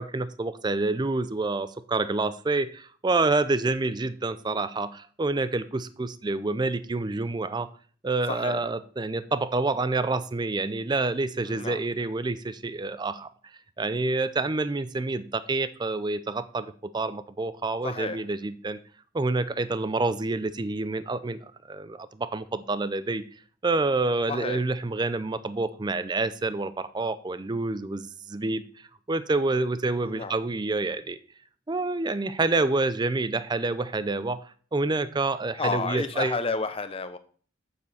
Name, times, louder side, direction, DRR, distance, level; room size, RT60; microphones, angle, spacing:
voice 1, 0.0-7.7 8.0-13.3 13.8-18.8 19.1-23.3 23.6-28.7 29.1-31.2 31.7-36.4, right 3 dB, 25° right, 14 dB, 0.4 m, -28 dB
voice 2, 8.3-8.6 11.5-11.8 17.8-18.2 24.3-24.6 30.0-30.3 35.6-37.2, left 4 dB, 30° left, 10 dB, 0.7 m, -31 dB
8.3 x 6.8 x 4.2 m, 0.43 s
head